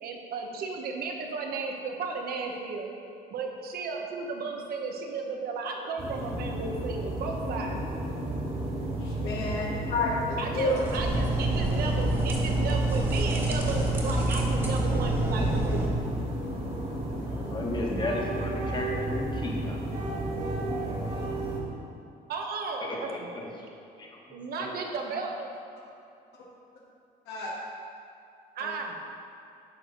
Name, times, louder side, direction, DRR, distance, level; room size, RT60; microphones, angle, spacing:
voice 1, 0.0-2.9 3.3-7.8 10.4-15.8 22.3-23.1 24.3-25.5 28.6-29.0, right 4 dB, 65° right, 1 dB, 1.3 m, -34 dB
sound 1, 6.0-21.6, right 1 dB, 40° right, 2.2 m, -33 dB
voice 2, 9.0-9.6 9.9-10.8 27.3-27.5 28.6-28.8, left 2 dB, 85° left, -6 dB, 1.7 m, -30 dB
sound 2, 10.9-15.9, right 1 dB, 15° right, 1.7 m, -27 dB
voice 3, 17.1-19.8 22.8-23.7 24.0-24.6, left 1 dB, 25° left, -1 dB, 1.6 m, -35 dB
9.9 x 6.3 x 4.0 m, 2.6 s
cardioid pair, 110°, 17 cm